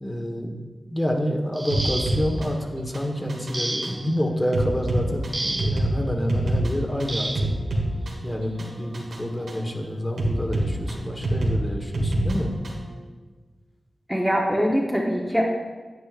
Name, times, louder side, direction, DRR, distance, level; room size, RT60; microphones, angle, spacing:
voice 1, 0.0-0.6 0.9-7.5 8.2-12.5, equal, 15° left, 1 dB, 1.3 m, -28 dB
sound 1, 1.5-2.4 3.5-4.2 5.3-5.9 7.1-7.6 8.8-8.9 9.4-9.6, right 1 dB, 25° right, 0.4 m, -31 dB
sound 2, 1.7-12.9, right 1 dB, 90° right, 1.6 m, -28 dB
voice 2, 14.1-15.4, equal, 5° right, -2 dB, 1.0 m, -22 dB
9.5 x 8.7 x 2.5 m, 1.4 s
cardioid pair, 55°, 0 cm